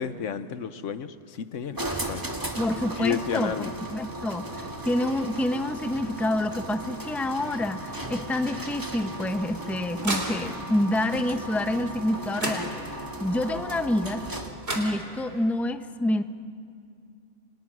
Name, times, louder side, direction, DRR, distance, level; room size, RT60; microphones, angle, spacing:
voice 1, 0.0-2.3 2.9-3.7, left 7 dB, 80° left, 12 dB, 1.2 m, -32 dB
sound 1, 1.8-14.7, right 1 dB, 15° right, 2.0 m, -36 dB
voice 2, 2.6-14.3 14.7-16.2, left 1 dB, ahead, 8 dB, 0.8 m, -28 dB
sound 2, 9.2-10.8 12.0-12.1 12.4-13.2 14.3-14.4 14.6-15.5, right 1 dB, 55° right, 3.8 m, -33 dB
29.5 x 28.0 x 6.2 m, 2.4 s
omnidirectional pair, 1.3 m